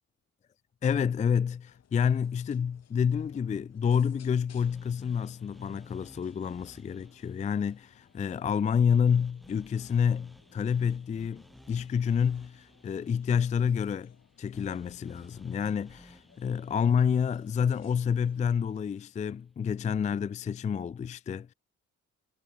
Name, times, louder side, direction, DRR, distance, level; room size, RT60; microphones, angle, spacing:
voice 1, 0.8-21.5, left 7 dB, 25° left, 0.4 m, -28 dB
sound 1, 1.7-18.4, left 8 dB, 55° left, 6.0 m, -62 dB
sound 2, 4.6-18.7, equal, ahead, 1.5 m, -57 dB
cardioid pair, 90°, 30 cm